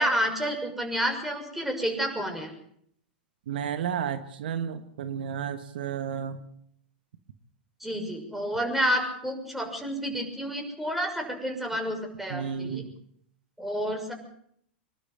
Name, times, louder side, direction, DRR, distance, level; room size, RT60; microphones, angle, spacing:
voice 1, 0.0-2.5 7.8-12.8 13.6-14.1, equal, 5° right, 3 dB, 6.4 m, -29 dB
voice 2, 3.5-6.4 12.3-12.9, right 8 dB, 70° right, 10 dB, 1.5 m, -32 dB
26.0 x 12.0 x 9.1 m, 0.67 s
hypercardioid pair, 100°, 5 cm